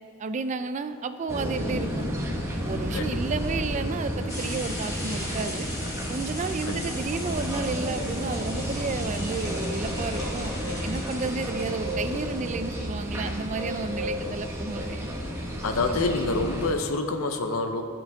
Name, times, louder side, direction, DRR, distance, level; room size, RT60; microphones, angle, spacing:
voice 1, 0.2-2.1 2.5-5.7 6.1-10.5 10.8-15.1, right 4 dB, 35° right, 10 dB, 0.3 m, -32 dB
sound 1, 1.3-16.7, equal, 15° right, 0.9 m, -31 dB
sound 2, 4.3-12.5, left 1 dB, 15° left, 1.6 m, -39 dB
voice 2, 15.6-17.8, left 3 dB, 75° left, 6 dB, 0.7 m, -27 dB
15.0 x 5.9 x 3.5 m, 2.5 s
head